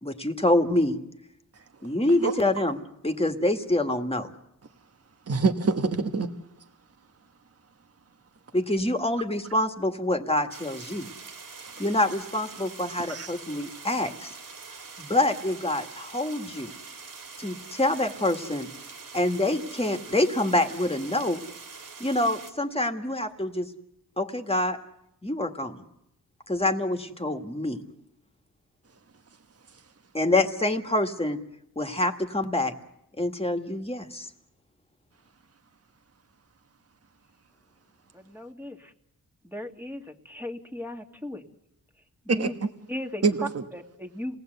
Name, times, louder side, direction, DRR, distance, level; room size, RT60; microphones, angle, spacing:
voice 1, 0.0-1.0 1.8-4.3 8.5-11.1 11.8-14.4 15.0-16.7 17.4-18.7 19.1-21.4 22.0-23.7 24.2-24.8 25.2-25.9 26.5-27.8 30.1-31.4 31.8-32.7 33.2-34.3, left 1 dB, 15° left, 6 dB, 2.0 m, -26 dB
voice 2, 5.3-6.3 13.0-13.3 42.3-42.5 43.2-43.5, right 4 dB, 40° right, 6 dB, 1.4 m, -25 dB
sound 1, 10.5-22.5, right 5 dB, 65° right, 2.7 m, -44 dB
voice 3, 38.1-38.9 39.4-41.4 42.2-42.5 42.9-44.4, left 1 dB, 5° right, 3 dB, 2.0 m, -37 dB
28.0 x 18.5 x 8.0 m, 0.83 s
cardioid pair, 85°, 35 cm